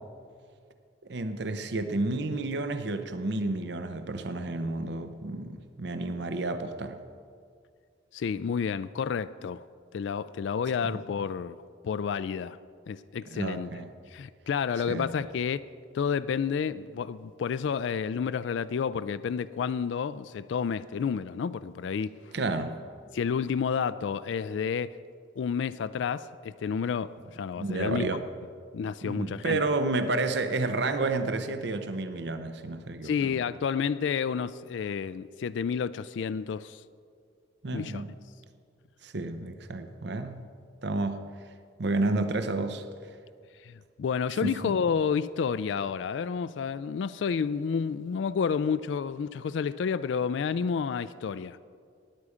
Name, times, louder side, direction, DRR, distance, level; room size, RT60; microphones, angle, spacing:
voice 1, 1.1-7.0 10.9-11.0 13.3-13.9 14.9-15.1 22.3-22.8 27.6-28.2 29.0-33.3 37.6-38.2 39.0-40.5 40.8-41.2 41.8-42.8 44.4-44.7, right 2 dB, 65° right, 0.7 m, -31 dB
voice 2, 8.1-9.6 9.9-11.6 11.8-12.6 12.9-13.7 14.1-15.6 15.9-22.2 23.1-25.0 25.4-28.1 28.7-29.6 33.0-36.8 37.7-38.0 43.6-51.6, left 6 dB, 75° left, 0.3 m, -30 dB
19.0 x 8.4 x 5.0 m
head